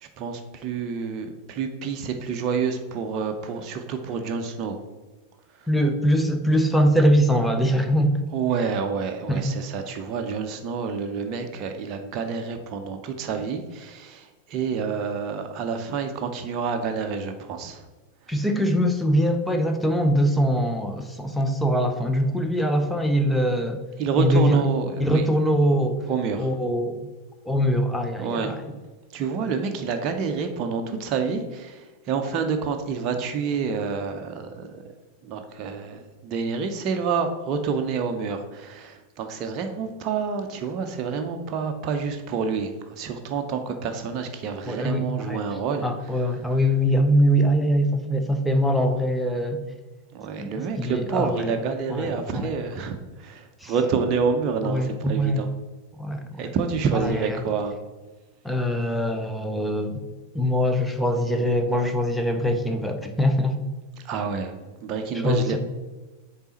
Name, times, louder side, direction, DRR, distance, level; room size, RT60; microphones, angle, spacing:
voice 1, 0.0-4.8 5.6-5.7 8.3-17.8 24.0-25.2 26.1-26.5 28.2-28.5 29.1-34.8 35.2-45.9 50.1-55.5 56.4-57.8 64.0-64.5 64.8-65.6, right 5 dB, 35° right, 5 dB, 0.6 m, -28 dB
voice 2, 5.7-8.2 9.3-9.5 18.3-23.8 24.2-24.6 25.0-26.0 26.4-27.0 27.4-28.6 44.7-45.4 45.8-49.6 50.4-50.5 50.8-51.5 51.9-52.5 53.6-53.7 54.6-55.5 56.0-56.4 56.9-57.4 58.4-60.0 60.3-63.6 65.2-65.5, equal, 5° left, 5 dB, 0.7 m, -22 dB
7.0 x 4.0 x 4.3 m, 1.2 s
figure-of-eight pair, 90°, 0 cm